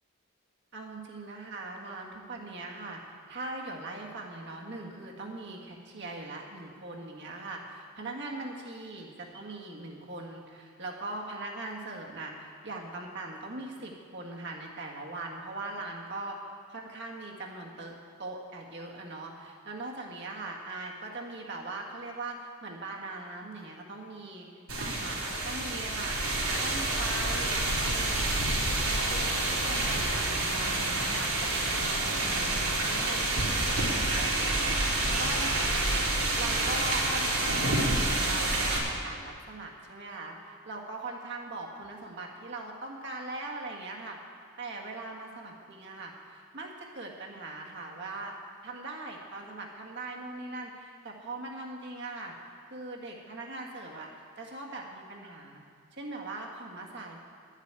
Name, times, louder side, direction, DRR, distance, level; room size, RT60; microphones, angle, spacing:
voice 1, 0.7-16.4 16.7-24.5 24.8-25.2 25.4-26.2 26.5-30.8 31.1-34.6 35.1-35.9 36.4-44.2 44.6-48.4 48.6-52.3 52.7-54.1 54.4-55.6 55.9-57.2, right 2 dB, 50° right, -1 dB, 1.7 m, -40 dB
sound 1, 24.7-38.8, right 2 dB, 80° right, 4.2 m, -28 dB
11.5 x 8.2 x 9.5 m, 2.3 s
head